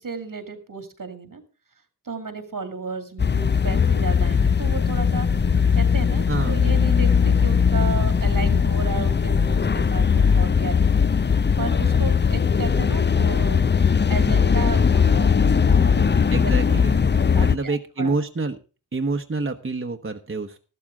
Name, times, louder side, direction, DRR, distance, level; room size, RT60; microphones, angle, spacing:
voice 1, 0.0-1.4 2.0-11.3 11.6-13.6 14.1-15.3 15.6-16.1 16.4-16.8 17.3-18.1, right 4 dB, 80° right, 8 dB, 2.4 m, -33 dB
sound 1, 3.2-17.6, left 6 dB, 35° left, 0.5 m, -19 dB
voice 2, 6.3-6.6 16.3-17.0 17.4-18.6 18.9-20.6, right 3 dB, 40° right, 6 dB, 1.0 m, -27 dB
13.5 x 12.5 x 3.6 m, 0.33 s
wide cardioid pair, 45°, 33 cm